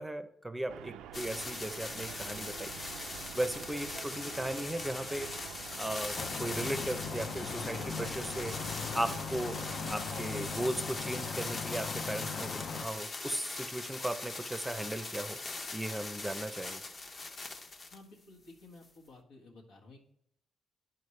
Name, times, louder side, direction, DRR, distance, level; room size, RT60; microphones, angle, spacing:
voice 1, 0.0-2.7 3.3-5.3 5.8-8.6 8.9-9.6 9.9-15.4 15.7-16.8, right 1 dB, 10° right, 10 dB, 0.6 m, -37 dB
sound 1, 0.7-10.7, right 10 dB, 90° right, 0.3 m, -47 dB
sound 2, 1.1-18.0 18.8-18.9, left 3 dB, 35° left, 0.9 m, -41 dB
sound 3, 6.2-12.9, left 6 dB, 60° left, 0.5 m, -39 dB
voice 2, 17.9-20.0, left 2 dB, 90° left, 0 dB, 1.6 m, -54 dB
11.0 x 4.4 x 3.2 m, 0.71 s
cardioid pair, 90°, 0 cm